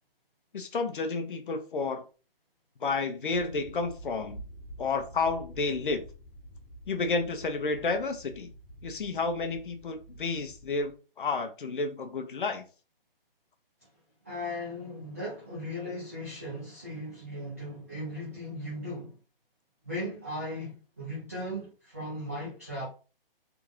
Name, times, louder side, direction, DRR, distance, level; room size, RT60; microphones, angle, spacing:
voice 1, 0.5-2.0 2.8-4.4 4.8-6.0 6.9-8.5 8.8-12.6, left 3 dB, 60° left, 0.8 m, -31 dB
sound 1, 3.3-10.9, right 1 dB, 5° left, 1.0 m, -48 dB
voice 2, 14.2-19.2 19.8-22.9, left 1 dB, 15° right, 0.5 m, -37 dB
3.6 x 2.5 x 3.0 m
hypercardioid pair, 170°, 29 cm